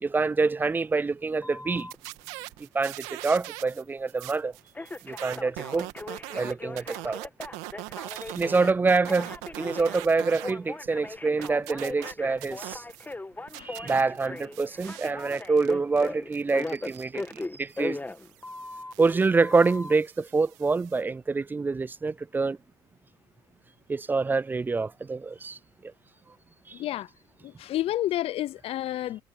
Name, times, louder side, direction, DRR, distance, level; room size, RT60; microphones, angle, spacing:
voice 1, 0.0-1.9 2.6-4.5 5.0-5.9 6.4-7.3 8.3-12.8 13.6-18.0 19.0-22.6 23.9-25.9 26.7-26.8, right 4 dB, 15° right, 0.3 m, -26 dB
Telephone, 1.4-2.0 4.7-18.9 19.4-19.9, left 2 dB, 15° left, 1.4 m, -39 dB
sound 1, 1.8-10.5 10.9-13.1 13.5-21.0, right 21 dB, 80° right, 2.3 m, -42 dB
voice 2, 26.7-27.1 27.4-29.2, left 13 dB, 60° left, 0.6 m, -30 dB
hypercardioid pair, 65°, 11 cm